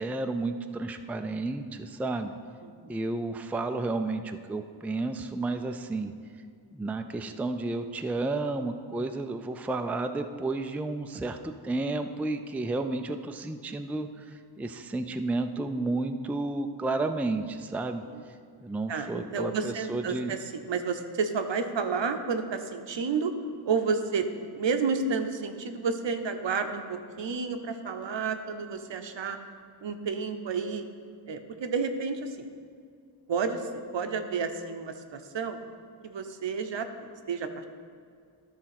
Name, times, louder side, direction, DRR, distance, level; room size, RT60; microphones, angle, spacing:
voice 1, 0.0-2.3 2.9-6.1 6.7-18.0 18.6-20.3, right 2 dB, 5° right, 7 dB, 0.3 m, -32 dB
voice 2, 2.6-2.9 18.1-18.2 18.9-23.3 23.6-29.4 29.8-30.9 31.3-32.5 33.3-35.6 36.0-37.6, right 5 dB, 70° right, 7 dB, 0.8 m, -31 dB
12.5 x 4.3 x 5.8 m, 2.2 s
wide cardioid pair, 70°, 46 cm